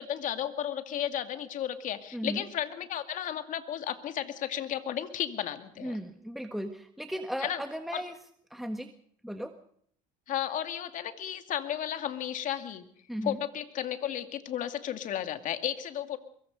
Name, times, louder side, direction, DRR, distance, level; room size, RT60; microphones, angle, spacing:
voice 1, 0.0-6.0 7.4-7.6 7.9-8.0 10.3-12.9 13.2-16.2, left 10 dB, 55° left, 8 dB, 2.3 m, -33 dB
voice 2, 5.8-8.1 8.5-8.9 9.2-9.5 13.1-13.4, equal, ahead, 6 dB, 1.5 m, -36 dB
23.5 x 22.5 x 5.3 m, 0.63 s
supercardioid pair, 100°, 16 cm